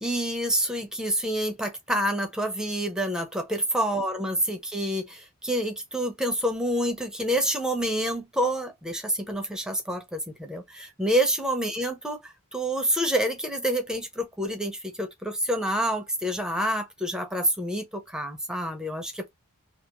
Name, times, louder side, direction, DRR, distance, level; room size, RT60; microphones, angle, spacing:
voice 1, 0.0-19.3, equal, 5° right, 0.6 m, -28 dB
2.5 x 2.5 x 2.9 m
head